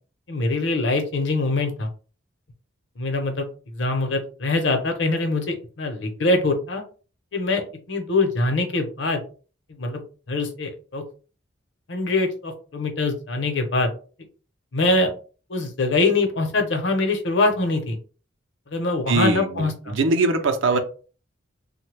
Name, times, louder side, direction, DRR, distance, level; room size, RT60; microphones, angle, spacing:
voice 1, 0.3-1.9 3.0-3.5 3.7-6.8 7.3-9.2 9.8-10.0 10.3-11.0 11.9-13.9 14.7-15.1 15.5-18.0 18.7-20.0, left 2 dB, 65° left, 0.7 m, -23 dB
voice 2, 19.1-20.8, right 3 dB, 75° right, 0.5 m, -22 dB
3.1 x 2.2 x 3.3 m
head